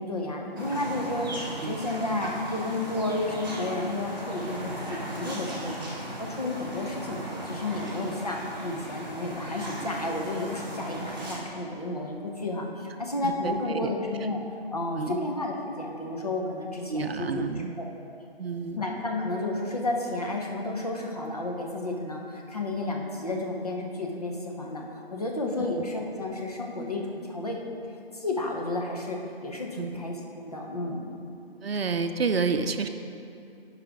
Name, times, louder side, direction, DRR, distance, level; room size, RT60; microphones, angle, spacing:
voice 1, 0.0-5.9 6.2-8.4 8.6-14.4 14.7-17.3 17.8-17.9 18.8-24.8 25.1-27.6 28.1-31.1, left 2 dB, 40° left, 0 dB, 0.9 m, -32 dB
sound 1, 0.6-11.4, right 1 dB, 20° right, 1.2 m, -37 dB
voice 2, 13.2-13.9 14.9-15.2 16.9-17.7 18.4-18.8 25.6-25.7 29.8-30.0 31.6-32.9, right 5 dB, 75° right, 8 dB, 0.6 m, -29 dB
9.3 x 5.0 x 5.0 m, 2.6 s
hypercardioid pair, 180°, 30 cm